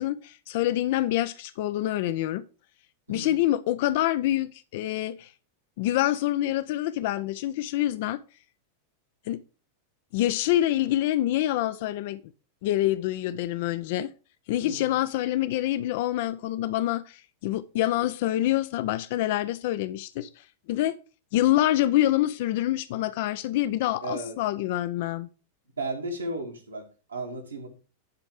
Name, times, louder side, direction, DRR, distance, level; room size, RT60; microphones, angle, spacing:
voice 1, 0.0-2.4 3.1-5.3 5.8-8.2 9.3-9.4 10.1-12.2 12.6-14.1 14.5-21.0 21.3-25.3, left 14 dB, 50° left, 0.4 m, -26 dB
voice 2, 14.6-14.9 24.0-24.4 25.8-27.7, right 2 dB, 80° right, 2.2 m, -34 dB
10.5 x 4.2 x 4.8 m
figure-of-eight pair, 90°, 0 cm